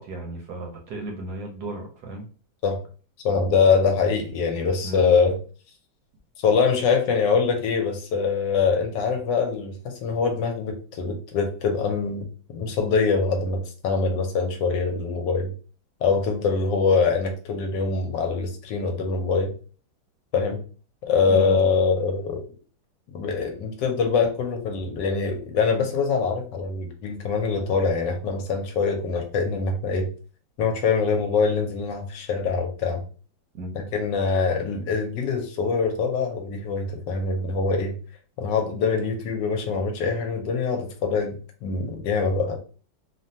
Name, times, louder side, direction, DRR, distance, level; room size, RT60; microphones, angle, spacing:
voice 1, 0.0-2.3 4.8-5.2 21.3-21.7 33.5-33.8, right 1 dB, 65° right, 1 dB, 1.0 m, -35 dB
voice 2, 3.2-5.4 6.4-12.3 12.5-15.5 16.0-19.5 20.3-20.6 21.0-22.4 23.1-30.1 30.6-33.0 33.7-37.9 38.4-41.4 41.6-42.6, left 5 dB, 75° left, 4 dB, 1.2 m, -24 dB
3.3 x 2.1 x 2.6 m, 0.38 s
omnidirectional pair, 2.0 m